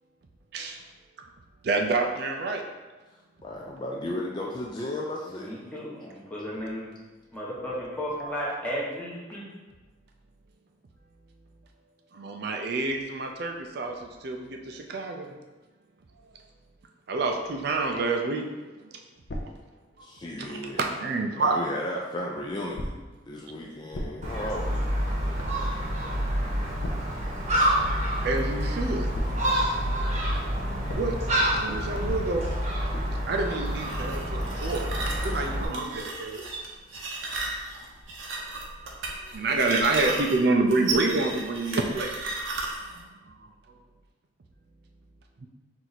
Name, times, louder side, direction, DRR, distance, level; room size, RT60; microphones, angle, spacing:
voice 1, 1.6-2.6 12.1-15.4 17.1-18.9 20.4-21.6 28.2-29.1 30.9-31.2 31.5-32.5 33.3-34.9 35.2-36.4 39.3-42.1 43.0-43.5, right 3 dB, 55° right, 2 dB, 0.4 m, -28 dB
voice 2, 3.4-5.5 20.0-20.8 21.3-22.9 23.3-25.0, left 1 dB, 25° left, -2 dB, 0.3 m, -34 dB
voice 3, 5.3-6.9 7.3-9.5, equal, 10° left, -6 dB, 0.9 m, -34 dB
sound 1, 19.3-21.2 22.7-28.8 29.1-34.6, equal, 65° left, 0.6 m, -42 dB
Gull seagull, 24.2-35.7, equal, 35° right, 0.9 m, -28 dB
sound 2, 33.7-43.0, right 2 dB, 90° right, 0.8 m, -34 dB
4.5 x 2.6 x 4.0 m, 1.2 s
head